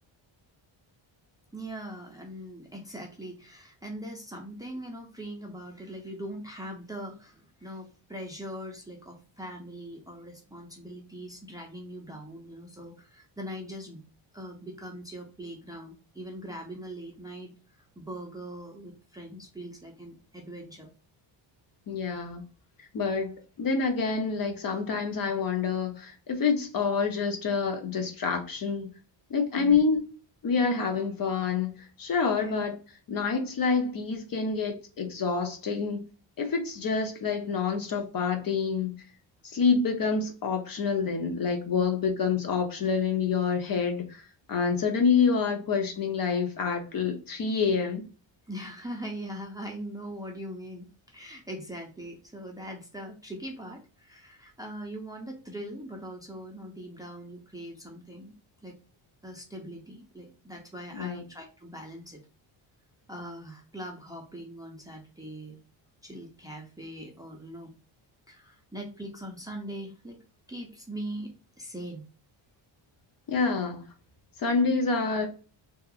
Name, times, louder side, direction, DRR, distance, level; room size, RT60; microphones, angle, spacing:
voice 1, 1.5-14.0 14.3-20.9 29.5-29.8 32.3-32.5 41.7-41.8 48.5-58.4 58.6-58.8 59.2-62.2 63.1-65.6 66.0-67.7 68.3-70.2 70.5-72.1, equal, 10° right, 0.5 m, -41 dB
voice 2, 21.9-22.4 22.9-28.9 29.3-30.0 30.4-31.7 32.0-32.8 33.1-36.0 36.4-38.9 39.4-44.2 44.5-48.0 60.9-61.2 73.3-73.8 74.4-75.3, left 5 dB, 45° left, 0.6 m, -27 dB
2.8 x 2.4 x 2.3 m
cardioid pair, 120°, 48 cm